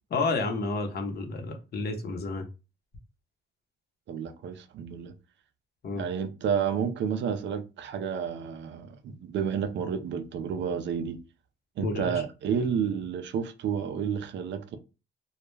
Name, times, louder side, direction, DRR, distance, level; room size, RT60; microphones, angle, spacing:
voice 1, 0.1-2.4 5.8-6.1 11.8-12.1, left 3 dB, 55° left, 0.8 m, -30 dB
voice 2, 4.1-5.1 6.0-11.2 11.8-14.8, right 7 dB, 65° right, 0.5 m, -30 dB
2.3 x 2.1 x 3.1 m
cardioid pair, 90°, 20 cm